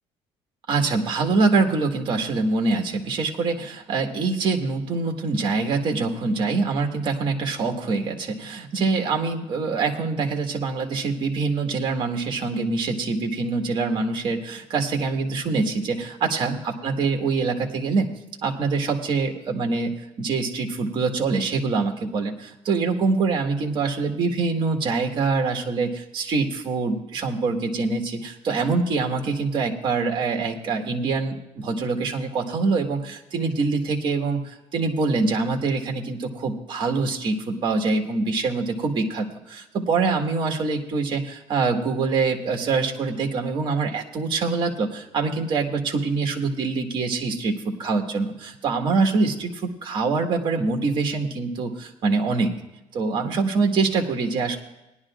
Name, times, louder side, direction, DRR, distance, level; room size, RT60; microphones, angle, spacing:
voice 1, 0.7-18.1 18.4-52.5 52.9-54.6, right 4 dB, 40° right, 3 dB, 1.7 m, -24 dB
20.0 x 11.0 x 2.5 m, 0.96 s
cardioid pair, 150°, 12 cm